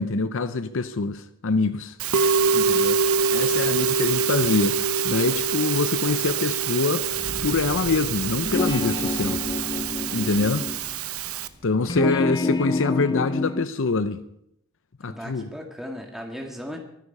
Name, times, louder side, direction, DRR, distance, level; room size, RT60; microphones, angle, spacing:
voice 1, 0.0-2.0 2.5-3.0 3.3-4.8 5.0-7.0 7.4-9.4 10.1-10.7 11.6-14.2 15.0-15.5, left 3 dB, 65° left, 0.7 m, -25 dB
Musical instrument, 2.0-11.5, right 5 dB, 80° right, 0.9 m, -25 dB
Fire, 7.0-12.2, right 1 dB, 35° right, 0.9 m, -41 dB
sound 1, 8.4-10.8 11.8-13.7, left 2 dB, 20° left, 0.5 m, -27 dB
voice 2, 15.1-16.8, equal, ahead, 1.8 m, -36 dB
23.5 x 9.8 x 5.5 m
head